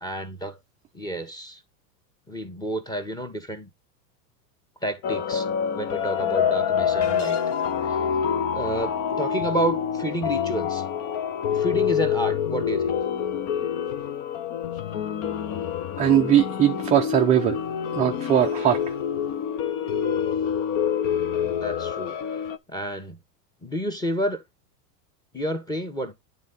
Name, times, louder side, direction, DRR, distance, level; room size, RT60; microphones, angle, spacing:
voice 1, 0.0-0.6 0.9-1.6 2.3-3.7 4.8-5.5 5.7-7.4 7.8-8.0 8.5-10.8 11.5-13.0 21.3-22.4 22.7-23.2 23.6-24.4 25.3-26.1, right 1 dB, 10° left, 1.4 m, -30 dB
sound 1, 5.0-22.6, left 8 dB, 30° left, 0.6 m, -26 dB
sound 2, 7.0-8.0, left 8 dB, 60° left, 1.4 m, -40 dB
voice 2, 16.0-17.6 17.9-18.9, right 10 dB, 15° right, 0.5 m, -20 dB
9.6 x 3.9 x 4.0 m
supercardioid pair, 140°, 50 cm